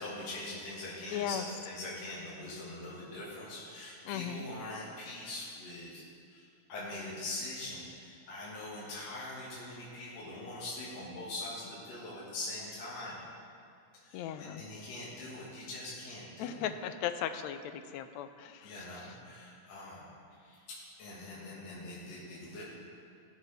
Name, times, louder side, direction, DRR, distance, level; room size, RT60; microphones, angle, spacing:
voice 1, 0.0-6.0 6.3-13.2 14.0-16.7 18.6-20.1 20.4-20.6 21.0-22.6, left 2 dB, 60° left, -7 dB, 2.7 m, -43 dB
voice 2, 1.1-1.5 4.1-4.5 14.1-14.6 16.4-18.8, left 10 dB, 80° left, 9 dB, 1.7 m, -37 dB
17.5 x 6.7 x 3.3 m, 2.4 s
omnidirectional pair, 3.4 m